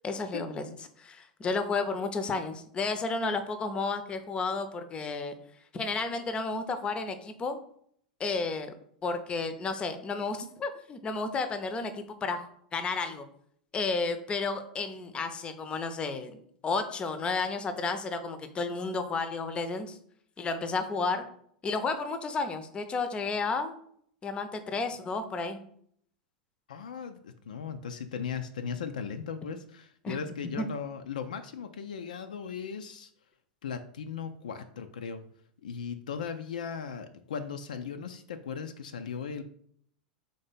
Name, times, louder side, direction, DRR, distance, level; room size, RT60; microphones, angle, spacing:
voice 1, 0.0-0.6 1.0-5.3 5.7-7.6 8.2-8.7 9.0-13.3 13.7-20.0 20.4-21.3 21.6-23.8 24.2-25.6 30.0-30.2 30.6-30.7, left 4 dB, 25° left, 9 dB, 0.6 m, -32 dB
voice 2, 26.7-33.1 33.6-35.2 35.6-39.4, left 6 dB, 75° left, 8 dB, 0.4 m, -37 dB
3.9 x 3.2 x 4.1 m, 0.65 s
figure-of-eight pair, 90°, 4 cm